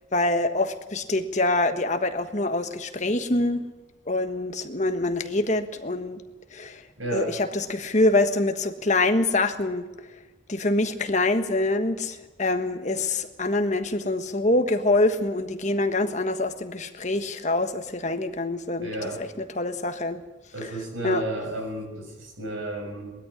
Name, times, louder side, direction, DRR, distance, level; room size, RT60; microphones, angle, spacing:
voice 1, 0.1-3.6 4.1-6.2 6.5-6.8 7.1-9.9 10.5-20.2 20.6-20.7 21.0-21.2, left 2 dB, 35° left, 8 dB, 1.4 m, -25 dB
voice 2, 7.0-7.3 18.8-19.2 20.5-23.1, right 1 dB, 85° right, 3 dB, 6.4 m, -32 dB
20.0 x 13.0 x 9.9 m, 1.2 s
head